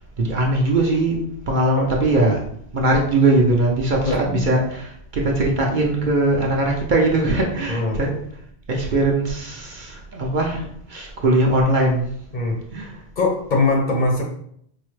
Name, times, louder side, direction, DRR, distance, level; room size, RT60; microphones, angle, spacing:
voice 1, 0.2-2.4 2.7-8.1 8.7-12.1 12.7-13.0, right 2 dB, 55° right, -1 dB, 0.7 m, -20 dB
voice 2, 4.0-4.5 7.7-8.0 12.3-12.6 13.2-14.2, left 3 dB, 50° left, 0 dB, 0.8 m, -21 dB
4.6 x 2.1 x 3.1 m, 0.67 s
omnidirectional pair, 1.1 m